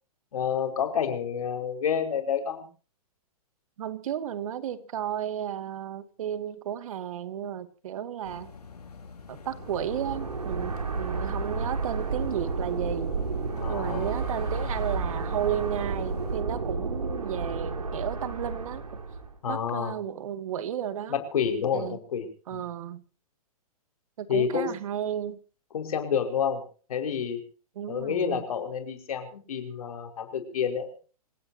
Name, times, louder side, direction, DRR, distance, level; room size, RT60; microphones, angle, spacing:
voice 1, 0.3-2.7 13.6-14.1 19.4-19.9 21.1-22.3 24.3-24.7 25.7-26.6 26.9-27.4 27.9-31.0, left 7 dB, 65° left, 4 dB, 5.6 m, -29 dB
voice 2, 3.8-8.5 9.3-13.2 13.7-19.0 19.5-21.2 21.7-22.0 22.5-23.0 24.2-25.4 27.8-28.4, right 10 dB, 60° right, 11 dB, 2.3 m, -33 dB
sound 1, 8.2-16.4, left 5 dB, 80° left, 4.1 m, -46 dB
sound 2, 9.5-19.4, right 4 dB, 85° right, 4.3 m, -31 dB
28.0 x 16.5 x 2.9 m, 0.38 s
hypercardioid pair, 120°, 19 cm